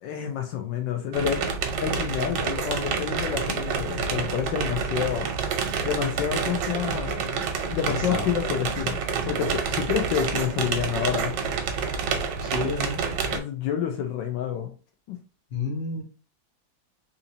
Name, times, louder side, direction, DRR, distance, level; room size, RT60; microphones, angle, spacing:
voice 1, 0.0-1.5 1.8-5.3 5.9-7.3 7.7-9.0 9.2-11.3 13.3-14.7 15.1-15.2, left 9 dB, 80° left, 4 dB, 1.3 m, -28 dB
sound 1, 1.1-13.4, right 5 dB, 70° right, 1.3 m, -28 dB
voice 2, 7.9-8.3 12.4-13.0 15.5-16.0, left 3 dB, 40° left, 0 dB, 1.1 m, -30 dB
3.9 x 2.8 x 2.7 m, 0.34 s
omnidirectional pair, 2.1 m